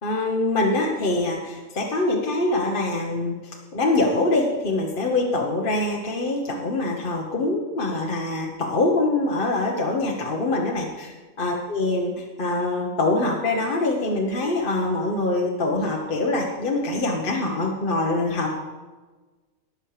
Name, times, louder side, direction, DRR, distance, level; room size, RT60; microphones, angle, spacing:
voice 1, 0.0-11.1 11.4-18.6, left 2 dB, 45° left, -1 dB, 1.3 m, -24 dB
18.5 x 6.5 x 4.9 m, 1.3 s
omnidirectional pair, 1.4 m